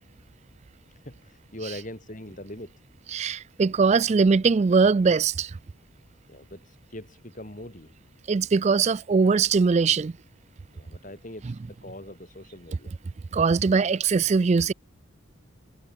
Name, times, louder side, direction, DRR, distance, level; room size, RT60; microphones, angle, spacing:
voice 1, 1.0-2.8 6.3-7.9 10.7-12.9, left 1 dB, 35° left, 5.4 m, -42 dB
voice 2, 3.1-5.5 8.3-10.1 13.3-14.7, right 5 dB, 30° right, 0.3 m, -21 dB
head